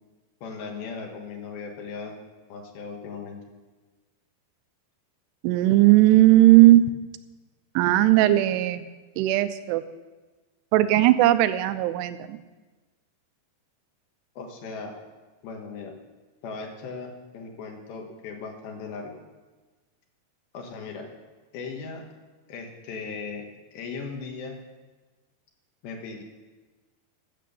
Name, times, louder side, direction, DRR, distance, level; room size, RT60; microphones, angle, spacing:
voice 1, 0.4-2.2 2.5-3.4 14.4-14.9 15.4-15.9 16.4-19.1 20.5-21.1 21.5-22.0 22.5-23.5 23.7-24.6 25.8-26.2, left 4 dB, 70° left, 2 dB, 3.2 m, -37 dB
voice 2, 5.4-6.8 7.8-8.8 9.2-9.8 10.7-12.4, right 15 dB, 85° right, 13 dB, 2.7 m, -17 dB
12.5 x 7.6 x 6.9 m, 1.2 s
omnidirectional pair, 4.7 m